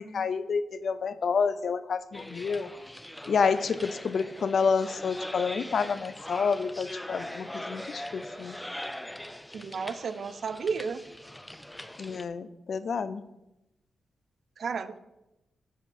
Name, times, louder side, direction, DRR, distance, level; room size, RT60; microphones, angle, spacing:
voice 1, 0.0-2.7 3.3-8.6 12.0-13.2, left 5 dB, 65° left, 14 dB, 0.5 m, -29 dB
sound 1, 2.1-12.2, left 1 dB, 10° left, 0.6 m, -41 dB
voice 2, 9.5-11.0 14.6-15.0, right 5 dB, 65° right, 13 dB, 0.6 m, -32 dB
7.8 x 7.5 x 5.2 m, 0.93 s
cardioid pair, 80°, 0 cm